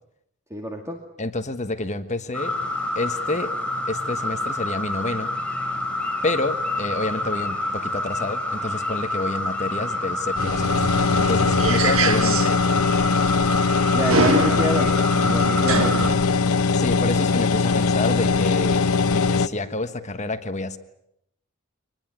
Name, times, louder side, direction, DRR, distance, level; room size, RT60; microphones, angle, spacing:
voice 1, 0.5-1.0 13.9-16.0, equal, 15° right, 2 dB, 2.4 m, -27 dB
voice 2, 1.2-2.6 2.9-3.5 3.9-5.3 6.2-10.8 11.1-12.6 16.7-18.8 19.1-20.8, left 2 dB, 35° left, 9 dB, 1.4 m, -28 dB
sound 1, 2.3-16.1, left 1 dB, 5° left, 4.9 m, -28 dB
sound 2, 10.4-19.5, left 4 dB, 85° left, 1.0 m, -21 dB
sound 3, 10.4-16.1, right 3 dB, 70° right, 1.6 m, -26 dB
25.5 x 20.5 x 9.5 m, 0.80 s
head